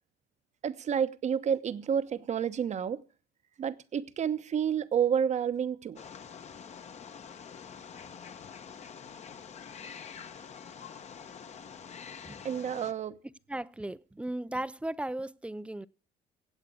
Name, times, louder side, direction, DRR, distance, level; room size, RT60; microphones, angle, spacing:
voice 1, 0.6-3.0 3.6-6.0 12.4-13.1, right 8 dB, 45° right, 1.1 m, -30 dB
Wild animals, 6.0-12.9, left 7 dB, 40° left, 1.2 m, -46 dB
voice 2, 13.5-15.9, right 1 dB, 5° right, 0.6 m, -36 dB
17.0 x 8.0 x 7.0 m
cardioid pair, 110°, 17 cm